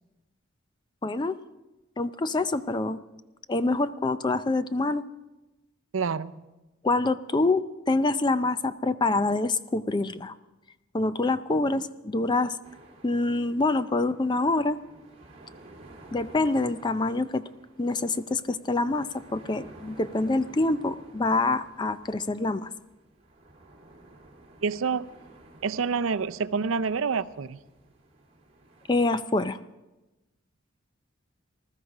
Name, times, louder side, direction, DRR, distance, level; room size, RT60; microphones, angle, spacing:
voice 1, 1.0-1.4 2.0-3.0 3.5-5.0 6.8-10.3 10.9-12.6 13.0-14.8 16.1-17.4 17.8-22.7 28.9-29.6, left 2 dB, 20° left, 13 dB, 0.4 m, -26 dB
voice 2, 5.9-6.5 24.6-25.1 25.6-27.6, right 5 dB, 75° right, 12 dB, 0.5 m, -28 dB
sound 1, 12.6-29.1, right 2 dB, 30° right, 2.9 m, -52 dB
20.0 x 13.0 x 4.9 m, 1.1 s
head